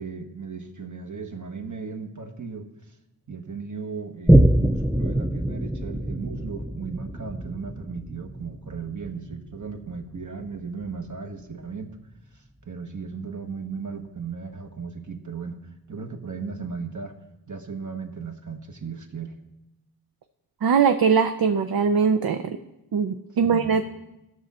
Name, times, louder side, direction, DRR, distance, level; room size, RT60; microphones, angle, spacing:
voice 1, 0.0-2.7 3.3-11.9 12.3-15.6 15.9-17.2 17.5-19.3 23.4-23.8, right 5 dB, 50° right, 4 dB, 1.3 m, -36 dB
Boom, 4.3-11.2 11.7-11.8, right 1 dB, ahead, 0.4 m, -24 dB
voice 2, 20.6-22.6 22.9-23.8, right 6 dB, 65° right, 8 dB, 0.6 m, -21 dB
14.5 x 6.2 x 4.3 m, 0.94 s
cardioid pair, 45°, 39 cm